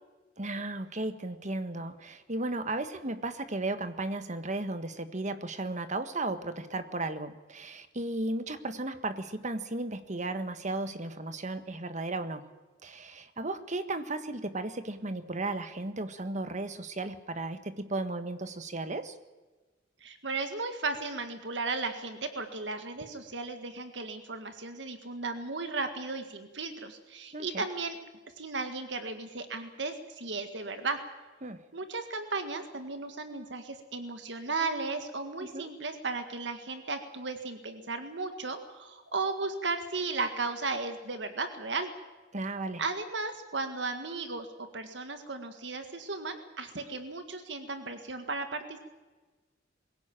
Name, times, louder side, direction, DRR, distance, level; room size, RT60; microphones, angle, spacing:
voice 1, 0.4-12.4 12.8-19.2 27.3-27.6 31.4-31.6 35.4-35.7 42.3-42.8 46.8-46.9, right 2 dB, 40° right, 10 dB, 1.5 m, -35 dB
voice 2, 20.0-28.0 28.4-31.0 31.7-41.9 42.8-48.8, right 3 dB, 70° right, 7 dB, 1.9 m, -35 dB
22.5 x 16.5 x 9.0 m, 1.3 s
head